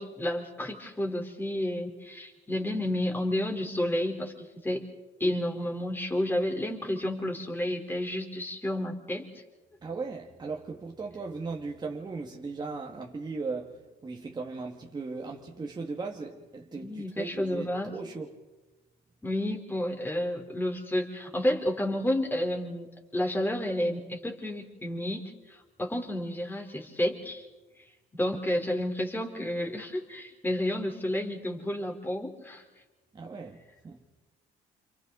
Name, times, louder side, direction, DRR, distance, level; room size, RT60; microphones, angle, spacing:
voice 1, 0.0-4.9 5.2-9.4 16.7-17.9 19.2-22.9 23.1-27.5 28.2-32.6, left 1 dB, 10° left, 4.0 m, -31 dB
voice 2, 9.8-18.4 33.1-34.0, right 4 dB, 25° right, 2.0 m, -38 dB
30.0 x 28.0 x 4.0 m
cardioid pair, 110°, 17 cm